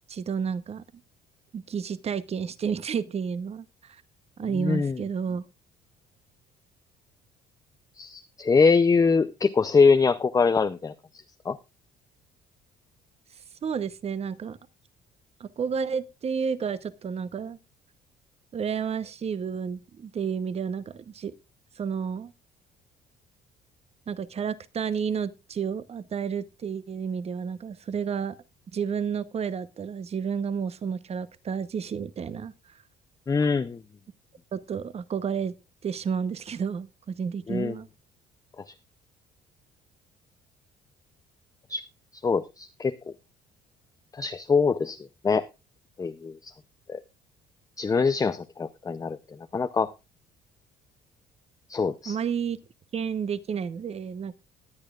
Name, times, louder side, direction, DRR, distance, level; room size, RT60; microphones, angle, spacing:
voice 1, 0.1-0.8 1.5-4.0 4.4-5.4 13.6-14.6 15.4-17.6 18.5-21.3 21.8-22.3 24.1-28.4 28.7-32.5 34.5-35.5 35.8-37.9 52.1-52.6 52.9-54.3, right 6 dB, 40° right, 0.9 m, -31 dB
voice 2, 4.5-5.0 8.0-10.9 11.5-11.6 33.3-33.8 37.5-37.8 41.7-41.8 42.2-42.9 44.1-45.0 45.2-45.4 46.0-46.5 46.9-47.0 47.8-49.2 49.5-49.9 51.7-52.2, left 4 dB, 20° left, 0.6 m, -23 dB
20.5 x 8.8 x 2.4 m
cardioid pair, 110°, 17 cm